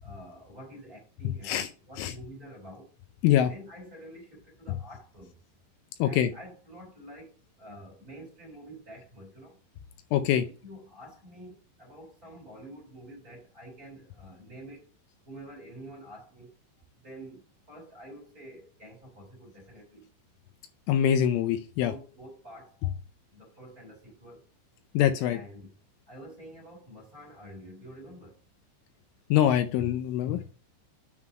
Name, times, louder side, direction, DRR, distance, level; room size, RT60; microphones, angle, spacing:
voice 1, 0.0-2.9 3.5-5.4 6.0-9.6 10.3-15.0 15.2-16.5 16.9-20.1 21.8-22.8 23.3-24.5 25.2-25.7 26.1-28.4, equal, 20° right, 2.7 m, -48 dB
voice 2, 6.0-6.3 10.1-10.5 20.9-21.9 24.9-25.4 29.3-30.5, left 10 dB, 80° left, 3.0 m, -24 dB
9.6 x 3.9 x 4.3 m
omnidirectional pair, 5.8 m